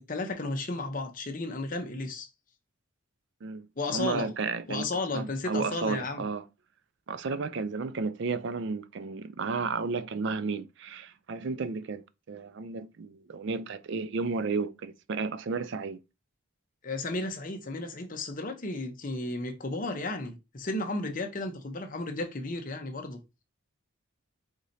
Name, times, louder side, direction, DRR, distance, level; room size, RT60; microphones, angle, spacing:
voice 1, 0.1-2.3 3.8-4.3 4.7-6.2 16.8-23.2, left 2 dB, 40° left, 0.8 m, -33 dB
voice 2, 3.4-4.9 5.1-6.4 7.1-16.0, right 4 dB, 55° right, 0.4 m, -33 dB
4.8 x 3.9 x 2.7 m
head